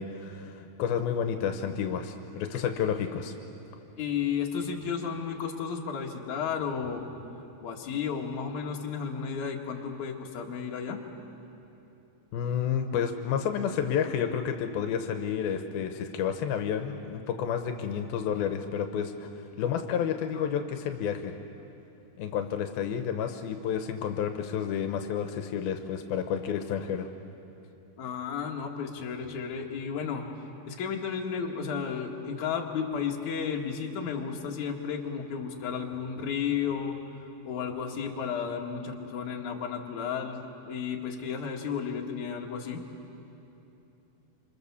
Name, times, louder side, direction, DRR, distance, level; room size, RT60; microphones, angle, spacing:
voice 1, 0.0-3.4 12.3-19.3 19.6-21.3 22.2-27.1, left 8 dB, 85° left, 6 dB, 2.8 m, -30 dB
voice 2, 4.0-7.1 7.6-11.0 20.3-20.4 28.0-30.3 30.7-37.0 37.4-42.8, left 6 dB, 60° left, 0 dB, 3.0 m, -33 dB
27.5 x 26.0 x 7.1 m, 2.9 s
omnidirectional pair, 4.3 m